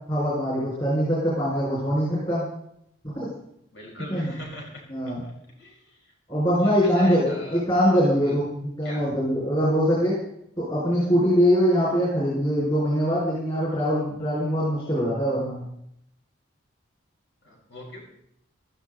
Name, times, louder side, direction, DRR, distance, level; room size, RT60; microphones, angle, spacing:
voice 1, 0.1-2.5 3.0-3.2 4.1-4.3 4.9-5.2 6.3-8.5 8.8-10.2 10.6-15.6, equal, 25° left, -7 dB, 5.1 m, -23 dB
voice 2, 3.7-5.1 5.6-6.1 6.6-7.6 8.2-8.4 8.8-9.0 17.4-18.0, left 1 dB, 65° left, -1 dB, 4.9 m, -40 dB
15.5 x 13.5 x 4.0 m, 0.74 s
head